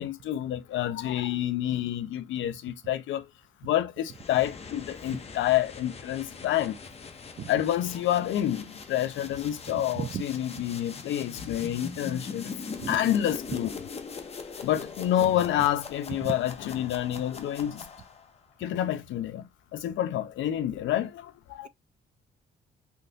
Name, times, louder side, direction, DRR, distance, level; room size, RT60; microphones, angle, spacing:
voice 1, 0.0-3.3 3.6-6.8 7.5-12.5 12.9-13.8 14.6-17.9 18.6-21.7, left 12 dB, 75° left, 0.5 m, -28 dB
sound 1, 4.1-18.4, left 5 dB, 30° left, 0.7 m, -41 dB
voice 2, 7.4-7.5 10.0-10.2 12.8-13.0, right 9 dB, 40° right, 0.4 m, -34 dB
3.7 x 2.6 x 2.5 m
cardioid pair, 90°, 20 cm